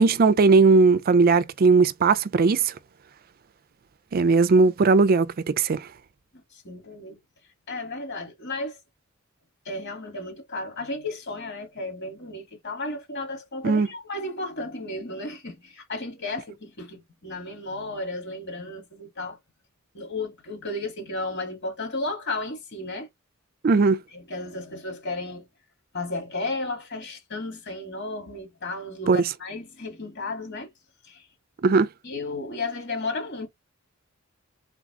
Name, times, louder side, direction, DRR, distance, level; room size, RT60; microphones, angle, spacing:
voice 1, 0.0-2.7 4.1-5.9 13.6-13.9 23.6-24.0 29.1-29.2 31.6-31.9, right 4 dB, 45° right, 0.4 m, -18 dB
voice 2, 6.3-7.2 7.7-8.8 9.7-19.4 19.9-23.1 24.1-25.5 25.9-30.7 31.0-31.3 32.0-33.5, left 2 dB, 55° left, 2.2 m, -33 dB
3.9 x 3.6 x 3.7 m
head